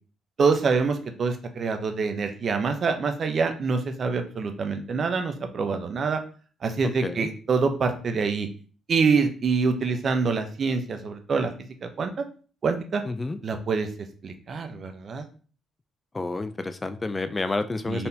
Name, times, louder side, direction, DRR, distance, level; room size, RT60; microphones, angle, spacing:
voice 1, 0.4-6.2 6.6-8.5 8.9-11.5 11.8-12.1 12.6-13.0 13.4-13.9 14.2-15.2 17.9-18.1, right 4 dB, 50° right, 7 dB, 0.7 m, -25 dB
voice 2, 13.1-13.4 16.1-18.1, left 3 dB, 25° left, 10 dB, 0.3 m, -29 dB
4.3 x 3.4 x 2.7 m, 0.39 s
cardioid pair, 90°, 0 cm